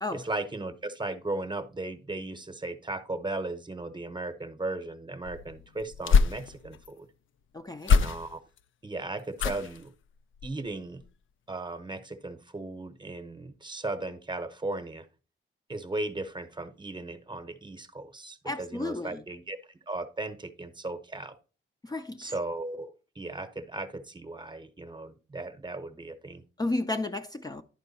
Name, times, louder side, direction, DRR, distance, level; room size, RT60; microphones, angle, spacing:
voice 1, 0.1-7.1 7.9-8.4 8.8-9.9 10.4-11.0 11.5-15.1 15.7-21.4 22.2-26.4, right 2 dB, 20° right, 0.9 m, -36 dB
sound 1, 5.2-6.9 7.8-8.6 9.3-9.9 10.3-10.7 11.0-11.1, left 5 dB, 70° left, 0.5 m, -25 dB
voice 2, 7.5-8.0 18.4-19.2 21.8-22.3 26.6-27.6, left 2 dB, 20° left, 0.5 m, -33 dB
11.0 x 4.5 x 4.1 m
cardioid pair, 105°, 21 cm